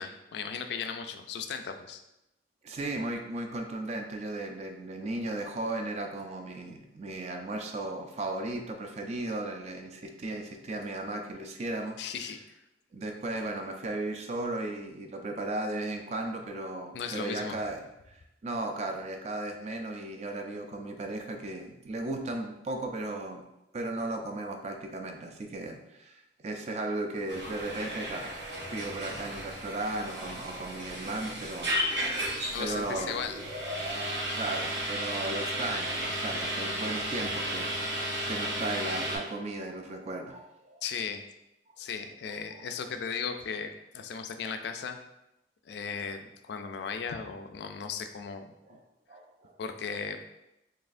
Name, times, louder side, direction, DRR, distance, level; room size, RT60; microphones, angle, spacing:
voice 1, 0.0-2.0 12.0-12.4 16.9-17.6 32.5-33.4 40.8-41.2 41.8-45.0 45.7-48.8 49.6-50.2, left 6 dB, 65° left, 7 dB, 0.3 m, -36 dB
voice 2, 2.6-12.0 12.9-17.8 18.4-23.4 23.7-28.3 28.7-31.8 32.6-33.2 33.9-40.8 44.4-44.5 48.7-48.8 49.1-49.5, right 2 dB, 35° right, 4 dB, 0.4 m, -36 dB
sound 1, 27.3-39.2, right 1 dB, 70° right, 1.4 m, -34 dB
4.1 x 3.1 x 2.5 m, 0.89 s
head